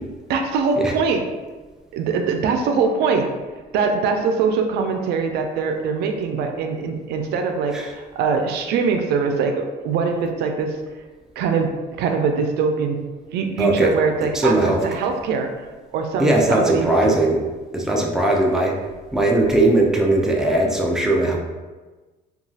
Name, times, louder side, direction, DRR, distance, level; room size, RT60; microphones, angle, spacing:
voice 1, 0.3-1.2 1.9-3.3 3.7-10.8 11.4-11.7 12.0-13.0 13.3-15.5 15.9-17.2, right 5 dB, 75° right, 4 dB, 0.4 m, -22 dB
voice 2, 13.6-13.9 14.3-14.8 16.2-17.4 17.7-18.8 19.1-21.4, right 2 dB, 5° right, -1 dB, 0.4 m, -18 dB
2.8 x 2.3 x 2.7 m, 1.3 s
cardioid pair, 110°, 17 cm